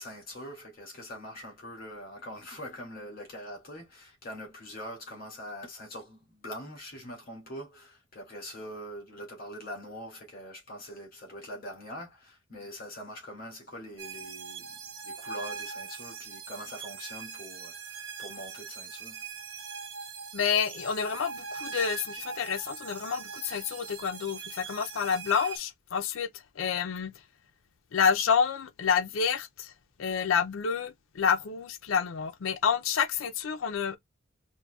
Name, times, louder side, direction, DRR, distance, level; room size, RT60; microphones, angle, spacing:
voice 1, 0.0-14.7 15.0-19.2, equal, 50° left, 2.4 m, -43 dB
sound 1, 14.0-25.6, right 6 dB, 70° right, 0.9 m, -41 dB
voice 2, 20.3-26.3 26.6-27.2 27.9-29.7 30.0-34.0, left 6 dB, 80° left, 0.5 m, -28 dB
5.5 x 2.6 x 2.3 m
head